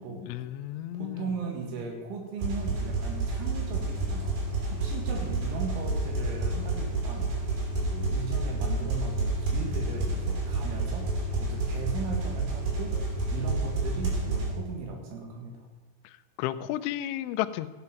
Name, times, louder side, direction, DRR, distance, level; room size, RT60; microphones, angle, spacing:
voice 1, 0.2-1.3 16.4-17.7, left 13 dB, 85° left, 13 dB, 3.0 m, -32 dB
voice 2, 0.9-4.3 4.7-7.3 7.9-13.0 13.3-15.7, right 4 dB, 80° right, 1 dB, 4.3 m, -37 dB
sound 1, 2.4-14.5, right 2 dB, 55° right, 4.3 m, -29 dB
15.5 x 9.7 x 5.8 m, 1.4 s
omnidirectional pair, 5.4 m